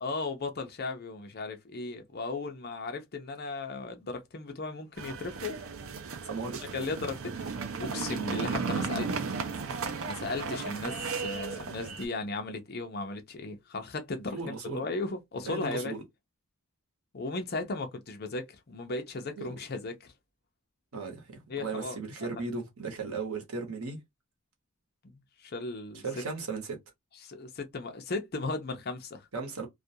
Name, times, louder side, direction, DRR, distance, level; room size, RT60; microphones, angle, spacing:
voice 1, 0.0-5.5 6.7-7.5 7.8-9.1 10.0-15.9 17.1-20.1 21.5-22.3 25.0-26.0 27.2-29.3, left 3 dB, 45° left, 0.6 m, -36 dB
sound 1, 5.0-12.1, right 5 dB, 65° right, 0.5 m, -35 dB
voice 2, 6.2-6.6 10.5-10.6 14.3-14.8 15.4-16.0 19.4-19.6 20.9-24.0 26.0-26.8 29.3-29.7, right 4 dB, 80° right, 0.9 m, -36 dB
2.4 x 2.2 x 2.7 m
head